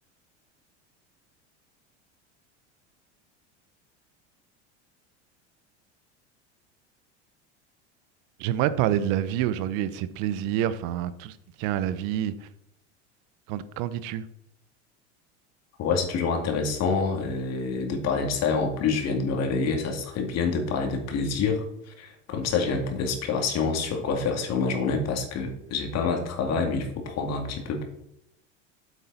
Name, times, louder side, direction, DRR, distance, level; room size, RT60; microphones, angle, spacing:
voice 1, 8.4-12.5 13.5-14.2, right 11 dB, 55° right, 14 dB, 0.8 m, -27 dB
voice 2, 15.8-27.8, left 4 dB, 45° left, 4 dB, 2.4 m, -27 dB
8.3 x 8.1 x 4.1 m, 0.79 s
hypercardioid pair, 90°, 35 cm